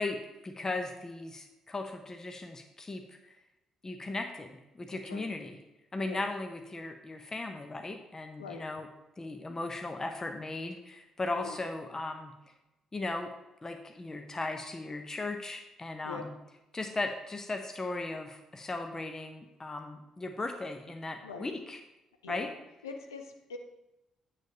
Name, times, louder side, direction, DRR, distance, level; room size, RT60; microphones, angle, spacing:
voice 1, 0.0-3.3 3.8-5.6 5.9-8.9 9.2-12.3 12.9-13.3 13.6-16.3 16.7-21.8 22.3-22.5, left 2 dB, 25° left, 5 dB, 0.8 m, -37 dB
voice 2, 4.9-5.3 6.1-6.2 8.4-8.6 11.3-11.6 16.0-16.2 21.2-21.5 22.2-22.5 22.8-23.6, left 5 dB, 85° left, 5 dB, 0.6 m, -43 dB
9.0 x 6.7 x 2.9 m, 0.96 s
figure-of-eight pair, 40°, 2 cm